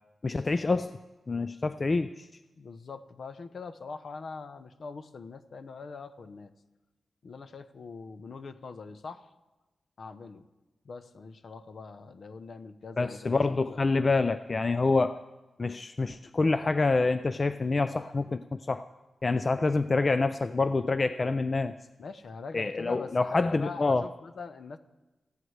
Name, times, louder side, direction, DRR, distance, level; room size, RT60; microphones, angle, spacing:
voice 1, 0.2-0.9 1.3-2.3 13.0-15.2 15.6-18.8 19.2-21.8 22.5-24.1, left 3 dB, 35° left, 11 dB, 0.3 m, -27 dB
voice 2, 2.6-6.5 7.2-9.3 10.0-10.4 10.8-13.8 22.0-24.8, left 4 dB, 60° left, 10 dB, 0.7 m, -42 dB
18.5 x 14.5 x 3.2 m, 1.1 s
wide cardioid pair, 130°, 0 cm